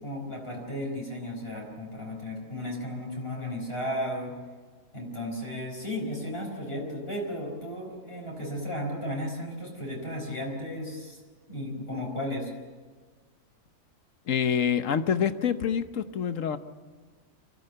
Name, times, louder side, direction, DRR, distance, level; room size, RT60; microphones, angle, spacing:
voice 1, 0.0-4.4 4.9-11.2 11.5-12.5, left 1 dB, 40° left, -1 dB, 4.8 m, -34 dB
voice 2, 14.3-16.6, left 7 dB, 60° left, 10 dB, 1.3 m, -26 dB
24.5 x 15.0 x 7.9 m, 1.4 s
omnidirectional pair, 1.6 m